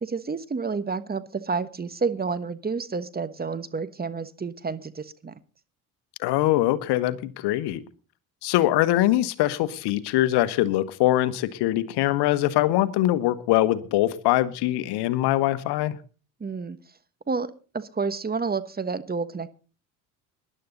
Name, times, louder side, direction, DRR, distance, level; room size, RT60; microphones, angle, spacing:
voice 1, 0.0-5.4 16.4-16.8 17.3-19.5, right 4 dB, 20° right, 14 dB, 1.2 m, -30 dB
voice 2, 6.2-7.8 8.4-16.0, left 15 dB, 70° left, 15 dB, 1.2 m, -23 dB
19.5 x 11.0 x 3.9 m, 0.36 s
hypercardioid pair, 65°, 41 cm